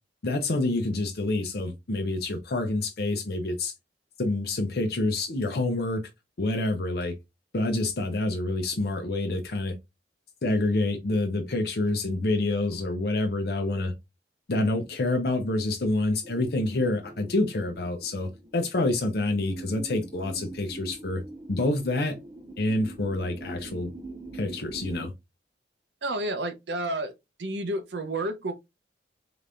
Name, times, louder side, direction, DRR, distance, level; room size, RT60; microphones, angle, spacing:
voice 1, 0.2-3.7 4.2-6.0 6.4-7.1 7.5-9.8 10.4-13.9 14.5-21.2 21.5-22.1 22.6-23.9 24.3-25.1, left 2 dB, 60° left, 0.6 m, -27 dB
sound 1, 16.2-25.1, right 2 dB, 20° right, 0.4 m, -43 dB
voice 2, 26.0-27.1 27.4-28.5, right 1 dB, 75° right, 0.8 m, -30 dB
3.9 x 3.4 x 2.5 m
head